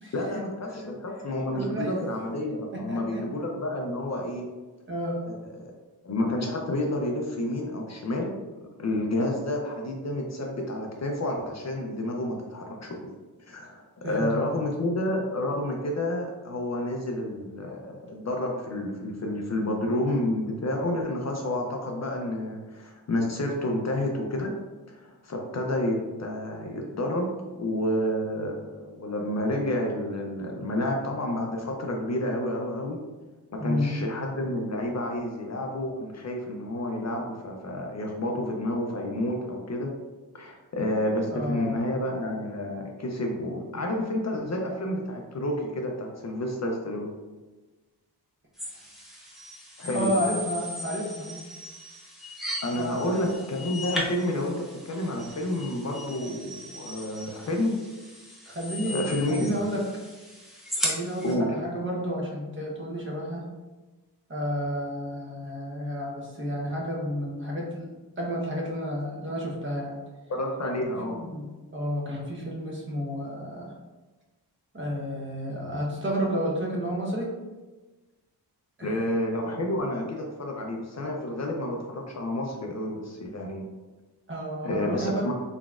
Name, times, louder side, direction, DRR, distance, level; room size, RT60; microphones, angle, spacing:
voice 1, 0.1-4.5 5.3-5.7 6.0-8.4 8.8-13.0 13.4-24.5 24.9-27.3 27.5-33.0 33.5-39.9 40.3-47.1 49.8-50.1 52.6-57.8 58.9-59.5 61.2-61.5 70.3-71.2 78.8-83.7 84.6-85.3, left 1 dB, 40° left, 1 dB, 0.5 m, -30 dB
voice 2, 1.5-1.9 2.7-3.2 4.9-5.2 14.0-14.6 33.6-34.0 41.3-41.9 49.9-51.4 52.7-53.5 58.5-60.0 60.8-63.5 64.3-70.0 71.1-73.7 74.7-77.3 78.8-78.9 84.3-85.2, equal, 30° right, -3 dB, 0.9 m, -31 dB
sound 1, 48.6-61.3, left 1 dB, ahead, 0.8 m, -37 dB
3.9 x 3.4 x 2.4 m, 1.2 s
wide cardioid pair, 130°, 41 cm